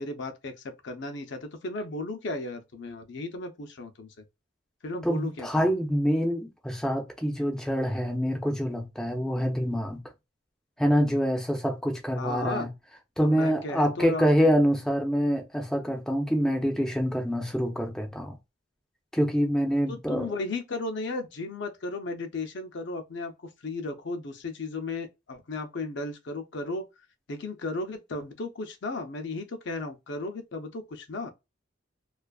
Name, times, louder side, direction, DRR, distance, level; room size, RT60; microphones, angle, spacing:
voice 1, 0.0-4.1 4.8-5.5 12.2-12.7 13.2-14.4 19.9-26.9 27.3-31.3, left 2 dB, 60° left, 0.5 m, -35 dB
voice 2, 5.0-10.0 10.8-12.7 13.2-18.4 19.1-20.3, equal, 5° left, 0.4 m, -26 dB
2.4 x 2.4 x 2.3 m
head